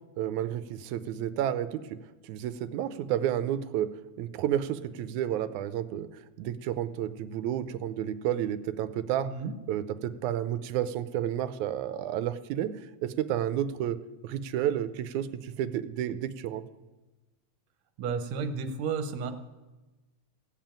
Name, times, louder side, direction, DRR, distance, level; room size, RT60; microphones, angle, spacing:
voice 1, 0.2-1.8 2.2-3.9 4.2-9.3 9.7-14.0 14.2-16.6, right 11 dB, 90° right, 13 dB, 2.1 m, -31 dB
voice 2, 18.0-19.3, right 5 dB, 70° right, 9 dB, 2.2 m, -32 dB
16.0 x 7.5 x 8.9 m, 1.1 s
omnidirectional pair, 3.3 m